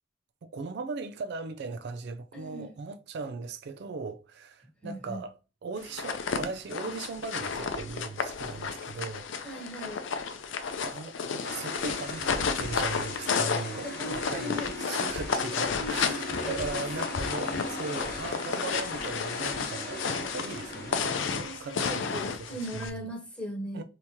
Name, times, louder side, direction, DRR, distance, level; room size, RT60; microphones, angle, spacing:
voice 1, 0.4-9.3 10.8-23.0 23.7-23.8, right 4 dB, 60° right, 0.4 m, -39 dB
voice 2, 2.3-2.7 4.8-5.2 9.4-10.0 13.8-14.7 15.8-16.8 21.4-23.8, equal, 5° left, 1.1 m, -38 dB
sound 1, 5.8-22.9, left 5 dB, 80° left, 0.5 m, -32 dB
sound 2, 11.4-21.1, left 2 dB, 55° left, 1.1 m, -39 dB
3.5 x 2.8 x 2.9 m
head